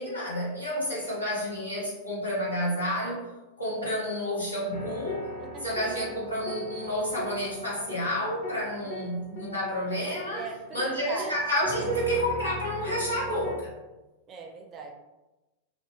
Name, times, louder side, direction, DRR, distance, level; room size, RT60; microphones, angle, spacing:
voice 1, 0.0-3.2 3.6-5.3 5.6-10.4 10.7-13.7, equal, 85° left, -8 dB, 1.0 m, -30 dB
sound 1, 4.7-13.6, equal, 45° left, 0.8 m, -39 dB
voice 2, 5.4-6.0 10.3-11.3 14.3-14.9, right 5 dB, 30° right, 2 dB, 0.4 m, -39 dB
2.7 x 2.1 x 3.0 m, 1.1 s
figure-of-eight pair, 90°, 0 cm